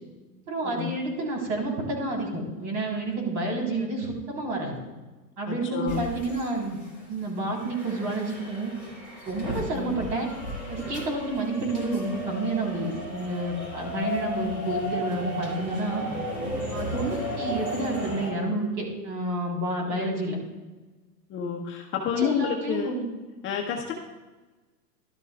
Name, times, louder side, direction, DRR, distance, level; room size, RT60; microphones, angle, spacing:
voice 1, 0.5-4.7 5.4-6.8 7.1-8.7 9.2-10.3 10.7-16.0 16.7-20.4 22.2-23.0, right 2 dB, 50° right, -1 dB, 3.6 m, -29 dB
voice 2, 5.5-6.1 9.7-10.0 19.9-20.1 21.3-22.9 23.4-23.9, left 8 dB, 25° left, 0 dB, 0.7 m, -29 dB
sound 1, 5.9-7.3 7.5-18.3, equal, 20° right, 2.8 m, -34 dB
12.0 x 12.0 x 2.3 m, 1.2 s
hypercardioid pair, 120°, 50 cm